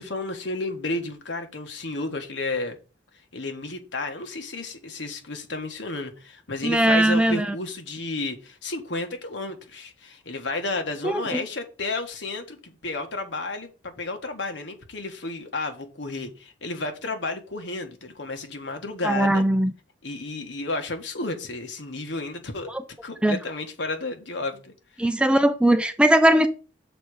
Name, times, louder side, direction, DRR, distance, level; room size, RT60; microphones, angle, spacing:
voice 1, 0.0-2.8 3.3-19.4 20.0-22.7 23.0-25.1, left 2 dB, 75° left, 1.6 m, -32 dB
voice 2, 6.6-7.5 11.0-11.4 19.0-19.7 23.2-23.4 25.0-26.5, right 1 dB, 5° right, 0.5 m, -19 dB
6.9 x 4.1 x 6.5 m
head